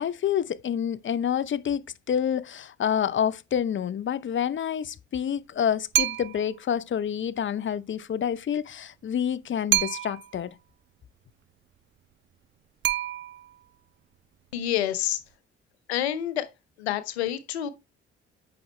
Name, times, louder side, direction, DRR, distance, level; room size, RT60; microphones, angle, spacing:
voice 1, 0.0-10.5, left 8 dB, 40° left, 0.7 m, -28 dB
sound 1, 5.9-6.6 9.7-10.4 12.8-13.6, right 12 dB, 40° right, 0.4 m, -27 dB
voice 2, 14.5-15.2 15.9-16.5 16.8-17.7, left 12 dB, 85° left, 0.7 m, -28 dB
8.5 x 6.0 x 3.2 m
hypercardioid pair, 50°, 32 cm